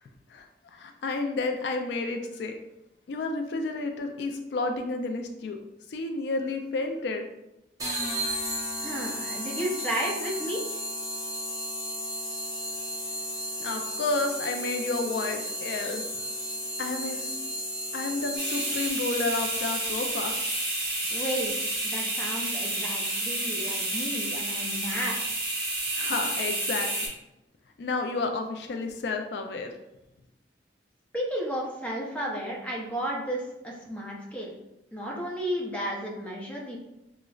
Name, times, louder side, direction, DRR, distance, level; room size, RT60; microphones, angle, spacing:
voice 1, 0.7-2.5 3.1-5.6 5.9-7.2 13.6-16.0 16.8-17.4 17.9-20.4 25.9-27.1 27.8-29.7, left 3 dB, 70° left, 5 dB, 0.3 m, -31 dB
sound 1, 7.8-19.2, equal, 20° right, 0.8 m, -34 dB
voice 2, 8.8-10.8 21.1-25.2 31.1-34.5 34.9-36.8, equal, 10° left, -3 dB, 0.5 m, -33 dB
sound 2, 18.4-27.1, right 1 dB, 60° right, 1.1 m, -30 dB
4.9 x 2.0 x 2.3 m, 0.91 s
head